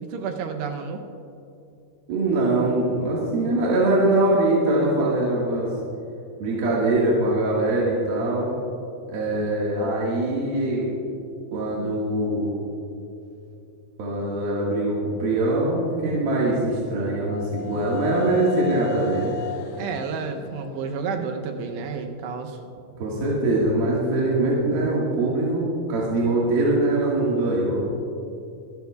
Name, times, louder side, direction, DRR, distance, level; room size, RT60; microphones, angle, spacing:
voice 1, 0.0-1.1 19.8-22.6, right 5 dB, 80° right, 4 dB, 2.7 m, -31 dB
voice 2, 2.1-5.7 6.4-8.5 9.1-10.9 11.5-12.5 14.0-19.3 23.0-27.8, right 2 dB, 60° right, -5 dB, 3.2 m, -22 dB
sound 1, 16.9-22.2, left 5 dB, 75° left, 2.3 m, -36 dB
25.0 x 12.5 x 2.3 m, 2.7 s
omnidirectional pair, 5.3 m